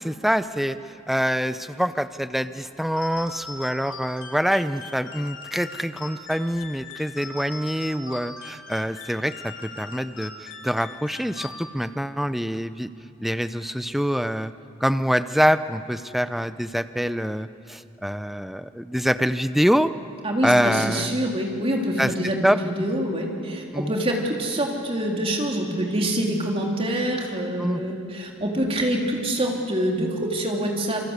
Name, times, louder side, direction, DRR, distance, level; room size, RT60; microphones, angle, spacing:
voice 1, 0.0-12.9 13.2-14.5 14.8-19.9 20.4-21.3 22.0-22.6 23.7-23.9 27.6-27.8, equal, ahead, 12 dB, 0.6 m, -25 dB
sound 1, 3.0-12.0, left 3 dB, 55° left, 3.5 m, -40 dB
voice 2, 20.2-31.1, right 1 dB, 25° right, 0 dB, 3.4 m, -26 dB
27.5 x 24.0 x 8.2 m, 2.5 s
head